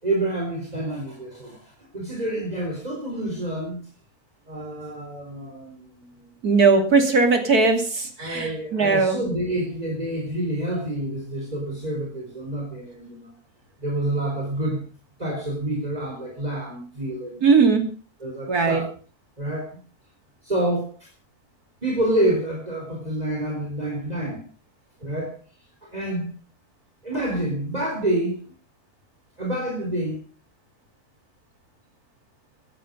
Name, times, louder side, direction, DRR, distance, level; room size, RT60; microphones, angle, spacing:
voice 1, 0.0-3.8 4.5-6.3 8.2-13.3 13.8-14.9 15.2-17.5 18.2-18.9 19.4-19.8 20.4-21.1 21.8-24.4 25.0-25.4 25.9-26.4 27.0-28.5 29.4-30.2, right 1 dB, 25° right, -1 dB, 4.2 m, -28 dB
voice 2, 6.4-9.2 17.4-17.8 18.5-18.8, right 4 dB, 90° right, 6 dB, 3.3 m, -19 dB
18.0 x 12.0 x 5.3 m, 0.38 s
omnidirectional pair, 1.6 m